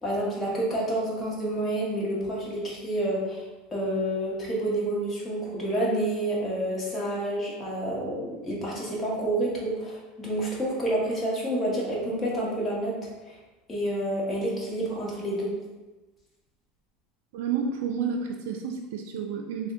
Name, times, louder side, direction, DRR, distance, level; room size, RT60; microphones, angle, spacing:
voice 1, 0.0-3.4 3.7-12.9 13.3-13.4 13.7-15.5, right 1 dB, 20° left, -5 dB, 1.1 m, -29 dB
voice 2, 17.3-19.7, right 6 dB, 80° right, 1 dB, 0.3 m, -30 dB
3.4 x 2.1 x 3.6 m, 1.2 s
supercardioid pair, 130°, 0 cm